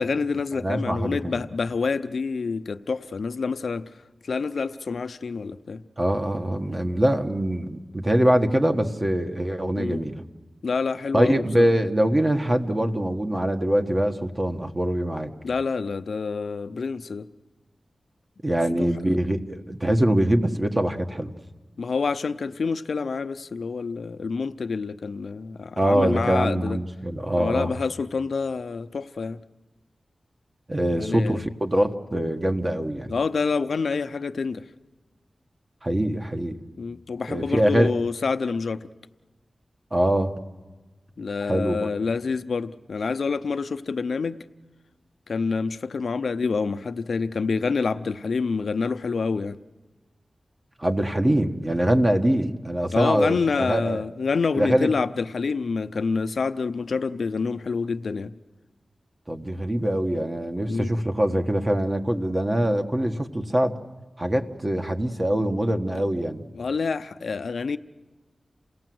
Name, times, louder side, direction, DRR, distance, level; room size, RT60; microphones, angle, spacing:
voice 1, 0.0-3.8 4.3-5.8 9.7-10.0 10.6-11.7 15.4-17.3 18.8-18.9 21.8-26.8 27.3-29.4 31.0-31.4 33.1-34.6 36.8-38.8 41.2-44.4 45.3-49.6 52.9-58.3 60.7-60.9 66.5-67.8, left 4 dB, 80° left, 10 dB, 0.6 m, -27 dB
voice 2, 0.6-1.4 6.0-10.2 11.1-15.3 18.4-21.3 25.8-27.8 30.7-33.1 35.8-36.6 37.3-37.9 39.9-40.3 41.4-41.9 50.8-54.0 54.5-54.9 59.3-63.8 64.2-66.4, right 1 dB, 30° right, 5 dB, 1.4 m, -23 dB
28.0 x 17.5 x 7.8 m, 1.3 s
wide cardioid pair, 60°, 0 cm